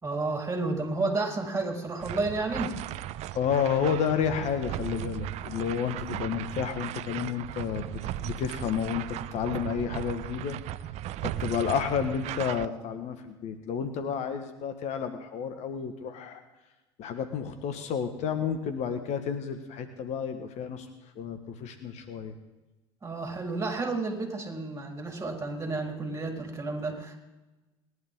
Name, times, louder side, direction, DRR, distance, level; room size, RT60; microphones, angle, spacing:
voice 1, 0.0-2.8 23.0-27.2, right 3 dB, 20° right, 1 dB, 4.0 m, -31 dB
sound 1, 2.0-12.7, right 13 dB, 55° right, 0.5 m, -37 dB
voice 2, 3.3-10.6 11.2-16.4 17.0-20.9 21.1-22.3, left 7 dB, 55° left, 8 dB, 1.5 m, -31 dB
20.0 x 11.5 x 3.8 m, 1.1 s
hypercardioid pair, 70°, 14 cm